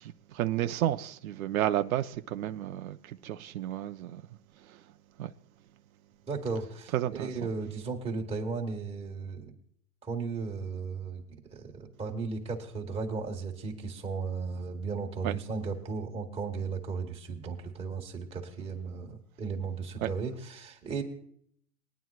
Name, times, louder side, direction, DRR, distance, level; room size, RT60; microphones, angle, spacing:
voice 1, 0.0-4.2 4.7-4.8 5.2-5.3 6.9-7.3 15.2-15.4 20.0-20.1, right 12 dB, 80° right, 0.7 m, -31 dB
voice 2, 6.3-9.5 10.0-21.0, right 4 dB, 15° right, 1.6 m, -35 dB
21.5 x 9.3 x 2.4 m
supercardioid pair, 145°, 41 cm